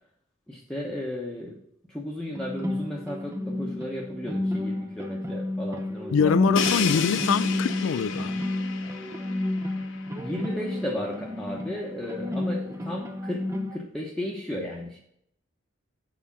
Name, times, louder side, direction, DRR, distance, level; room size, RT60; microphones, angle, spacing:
voice 1, 0.5-1.6 1.9-7.0 9.8-9.9 10.2-15.0, left 1 dB, 5° left, 1.0 m, -34 dB
sound 1, 2.4-13.8, left 1 dB, 15° right, 0.6 m, -31 dB
voice 2, 6.1-8.4, left 6 dB, 90° left, 0.4 m, -24 dB
Crash cymbal, 6.6-10.4, left 6 dB, 70° left, 0.8 m, -32 dB
7.1 x 4.9 x 7.1 m
head